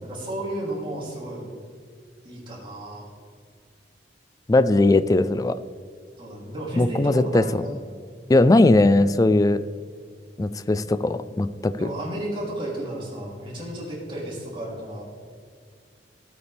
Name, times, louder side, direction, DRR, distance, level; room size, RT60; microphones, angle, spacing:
voice 1, 0.0-1.5 2.2-3.1 6.2-7.8 11.8-15.0, right 1 dB, 25° right, -5 dB, 3.2 m, -33 dB
voice 2, 4.5-5.6 6.8-7.4 8.3-9.6 10.4-11.9, left 2 dB, 20° left, 13 dB, 0.3 m, -19 dB
15.5 x 8.6 x 3.4 m, 2.1 s
head